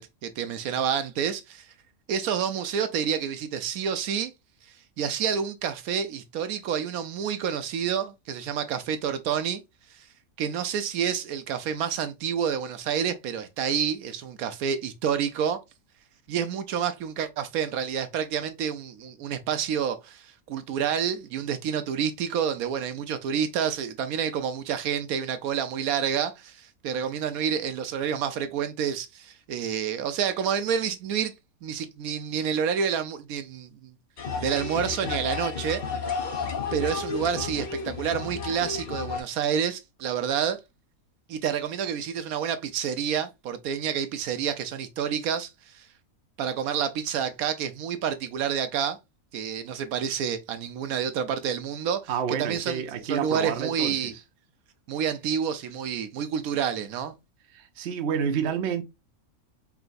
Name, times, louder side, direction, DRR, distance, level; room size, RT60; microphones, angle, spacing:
voice 1, 0.0-1.7 2.1-4.3 5.0-9.6 9.9-10.1 10.4-15.6 16.3-31.3 31.6-33.9 34.4-35.8 36.7-40.6 41.3-45.9 46.4-49.0 49.3-52.1 52.4-54.1 54.9-57.1, right 8 dB, 80° right, 1.0 m, -29 dB
sound 1, 34.2-39.2, left 5 dB, 40° left, 0.7 m, -32 dB
voice 2, 52.1-54.2 57.5-58.8, right 7 dB, 60° right, 0.8 m, -29 dB
4.7 x 2.9 x 2.5 m
omnidirectional pair, 1.5 m